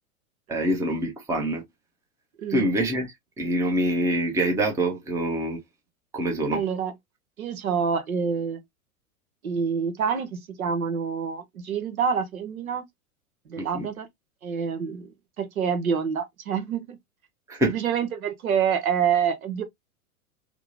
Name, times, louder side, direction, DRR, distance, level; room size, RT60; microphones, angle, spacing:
voice 1, 0.5-1.6 2.5-3.1 3.4-5.6 6.1-6.6 13.6-13.9 17.5-17.8, right 1 dB, 5° right, 0.7 m, -25 dB
voice 2, 6.5-6.9 7.4-8.6 9.4-12.8 13.5-14.1 14.4-15.1 15.4-17.0 17.6-19.6, right 7 dB, 65° right, 0.9 m, -27 dB
3.5 x 2.1 x 3.0 m
figure-of-eight pair, 95°, 45 cm